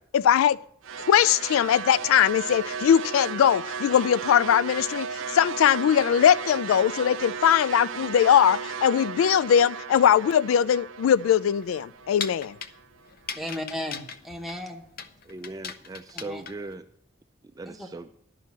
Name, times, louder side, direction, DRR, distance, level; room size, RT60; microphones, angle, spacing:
voice 1, 0.1-0.6 1.1-12.6, left 9 dB, 85° left, 0.3 m, -21 dB
sound 1, 0.8-13.1, right 6 dB, 70° right, 0.5 m, -35 dB
sound 2, 11.6-16.8, left 6 dB, 45° left, 0.6 m, -39 dB
voice 2, 13.3-14.8 16.1-16.4 17.7-17.9, left 1 dB, ahead, 1.0 m, -35 dB
voice 3, 15.2-16.9 17.4-18.1, right 2 dB, 20° right, 0.3 m, -39 dB
11.0 x 5.6 x 7.3 m
head